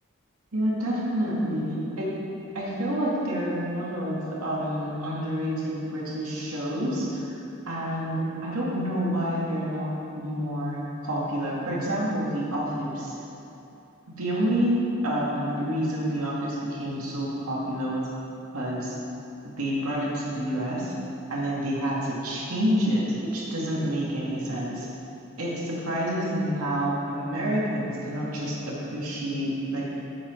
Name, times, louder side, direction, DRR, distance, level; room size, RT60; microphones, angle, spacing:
voice 1, 0.5-2.1 2.5-7.4 7.7-13.2 14.2-14.7 15.0-18.1 18.5-19.0 19.6-20.9 21.3-24.9 25.4-29.9, equal, 85° right, -5 dB, 2.3 m, -28 dB
8.5 x 6.0 x 7.3 m, 2.9 s
head